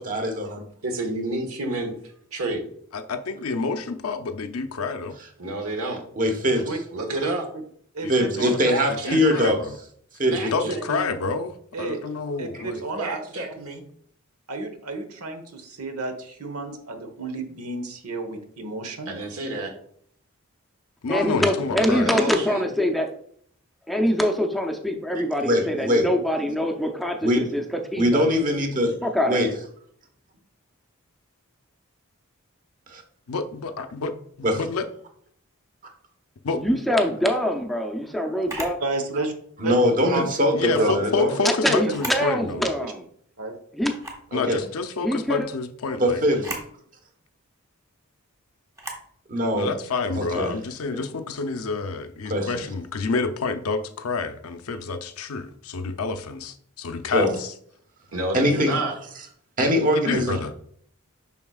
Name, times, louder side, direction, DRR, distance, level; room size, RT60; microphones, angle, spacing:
voice 1, 0.0-0.6 5.4-5.5 6.2-6.7 8.1-9.6 10.2-10.5 25.4-26.1 27.2-27.5 28.0-28.9 29.2-29.5 32.9-33.0 34.4-34.6 39.6-41.3 44.3-44.6 46.0-46.6 49.3-49.7 50.1-50.5 50.9-51.0 52.2-52.6 57.1-57.3 58.3-58.8 59.6-60.4, equal, 40° right, 4 dB, 1.2 m, -22 dB
voice 2, 0.8-1.9 2.3-2.6 5.4-6.0 6.9-7.5 8.7-9.4 10.3-11.1 13.0-13.8 19.1-19.7 21.7-22.7 58.1-58.9, right 2 dB, 70° right, 3 dB, 1.4 m, -29 dB
voice 3, 2.9-5.2 8.0-8.1 8.4-8.5 9.1-9.8 10.5-12.8 21.0-22.1 33.3-34.9 36.4-36.6 40.5-42.6 44.3-46.2 49.5-57.5 59.9-60.5, left 4 dB, 75° left, 8 dB, 0.6 m, -28 dB
voice 4, 7.2-7.6 7.9-8.7 10.7-10.8 11.7-12.0 12.4-13.2 14.5-19.1 38.8-39.3 39.6-39.7 40.1-40.2 41.8-41.9 42.5-42.7 43.4-43.5, right 3 dB, 90° right, 6 dB, 1.1 m, -31 dB
voice 5, 21.1-23.1 23.9-27.6 27.9-28.2 29.0-29.6 36.5-38.8 41.4-43.0 43.7-43.9 45.0-45.5, equal, ahead, 2 dB, 0.5 m, -24 dB
Camera, 38.5-38.8 40.5-40.9 41.8-42.3 42.7-42.8 43.9-44.3 46.3-46.7 48.7-49.1, right 1 dB, 15° right, 1.2 m, -35 dB
7.0 x 5.7 x 2.4 m, 0.62 s
head